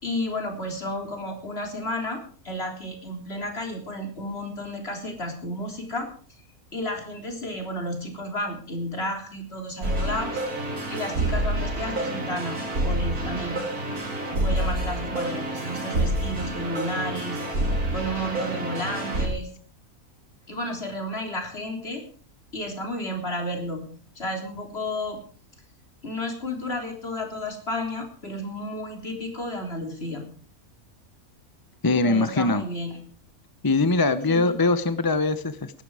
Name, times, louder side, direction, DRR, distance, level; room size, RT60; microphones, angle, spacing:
voice 1, 0.0-6.1 6.7-10.4 10.9-13.7 14.3-17.4 17.9-19.5 20.5-22.0 22.5-23.9 24.2-25.2 26.0-30.2 32.0-33.0 34.3-34.5, left 1 dB, 45° left, 3 dB, 3.9 m, -32 dB
sound 1, 9.8-19.3, right 1 dB, 85° right, 4.0 m, -28 dB
voice 2, 31.8-32.6 33.6-35.8, left 3 dB, 20° left, 12 dB, 0.6 m, -22 dB
19.5 x 12.0 x 4.9 m, 0.43 s
omnidirectional pair, 1.5 m